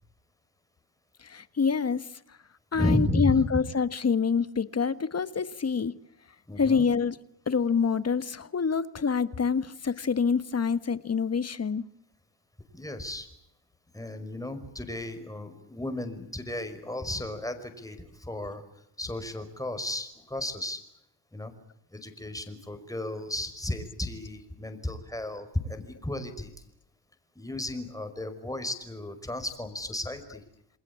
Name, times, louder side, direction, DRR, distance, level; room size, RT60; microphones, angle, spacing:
voice 1, 1.2-2.1 2.7-6.0 6.6-7.1 7.5-11.8, left 5 dB, 30° left, 1.5 m, -26 dB
voice 2, 2.7-3.5 6.5-6.9 12.7-13.3 13.9-18.6 19.0-20.8 21.3-21.5 21.9-26.5 27.4-30.4, left 1 dB, 5° left, 5.4 m, -33 dB
28.5 x 21.0 x 8.6 m
supercardioid pair, 80°, 49 cm